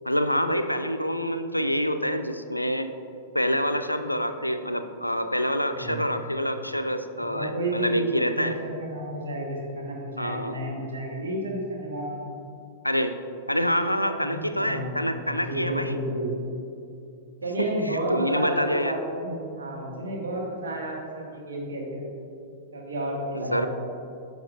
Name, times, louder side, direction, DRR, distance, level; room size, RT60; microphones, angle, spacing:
voice 1, 0.0-2.9 3.3-8.6 10.2-10.6 12.8-13.2 13.5-16.0 17.6-18.9 23.3-23.7, equal, 90° left, 9 dB, 0.3 m, -26 dB
voice 2, 5.7-6.2 7.2-12.2 14.1-16.3 17.4-22.0 22.7-23.7, right 1 dB, 65° right, -2 dB, 1.5 m, -31 dB
10.5 x 5.8 x 2.5 m, 2.6 s
figure-of-eight pair, 100°, 0 cm